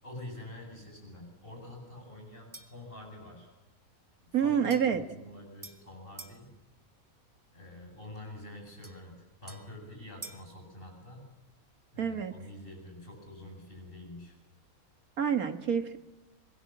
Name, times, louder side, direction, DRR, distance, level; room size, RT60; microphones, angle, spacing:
voice 1, 0.0-3.5 4.2-6.5 7.5-11.3 11.9-14.4, left 1 dB, 40° left, 2 dB, 8.3 m, -47 dB
sound 1, 2.5-2.9 4.7-6.4 8.8-10.6, right 2 dB, 15° right, 1.9 m, -50 dB
voice 2, 4.3-5.0 12.0-12.3 15.2-16.0, right 7 dB, 80° right, 8 dB, 2.2 m, -27 dB
26.5 x 22.5 x 7.4 m, 1.1 s
omnidirectional pair, 1.5 m